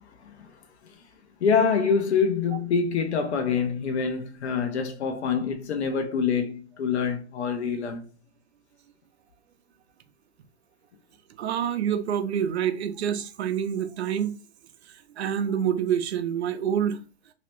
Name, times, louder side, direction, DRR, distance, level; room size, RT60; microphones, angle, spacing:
voice 1, 1.4-8.1, left 6 dB, 75° left, 0.9 m, -25 dB
voice 2, 11.4-14.4 15.2-17.0, right 9 dB, 70° right, 0.7 m, -27 dB
2.9 x 2.9 x 3.2 m
hypercardioid pair, 130°, 34 cm